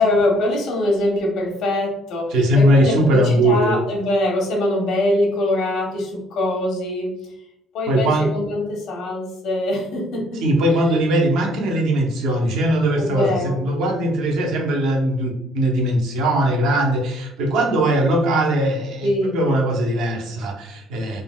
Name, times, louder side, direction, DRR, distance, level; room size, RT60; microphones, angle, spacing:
voice 1, 0.0-7.1 7.7-10.4 10.7-11.0 13.0-13.6 19.0-19.4, left 1 dB, 75° left, 0 dB, 0.9 m, -23 dB
voice 2, 2.3-3.8 7.9-8.3 10.4-21.2, right 1 dB, 80° right, 1 dB, 0.7 m, -20 dB
3.6 x 2.1 x 2.2 m, 0.81 s
cardioid pair, 135°, 0 cm